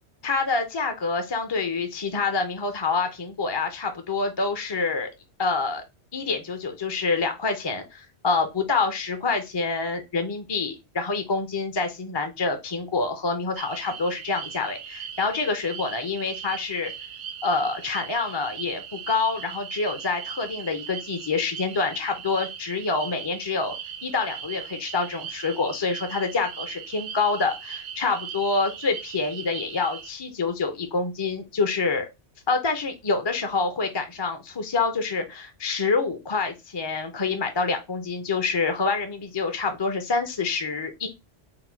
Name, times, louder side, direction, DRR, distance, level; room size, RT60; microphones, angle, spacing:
voice 1, 0.2-5.1 5.4-5.8 6.1-16.9 17.4-23.7 24.0-32.1 32.5-41.1, left 4 dB, 35° left, 6 dB, 0.4 m, -27 dB
sound 1, 13.6-30.1, right 8 dB, 65° right, 0.8 m, -39 dB
3.9 x 2.2 x 4.4 m, 0.24 s
omnidirectional pair, 1.2 m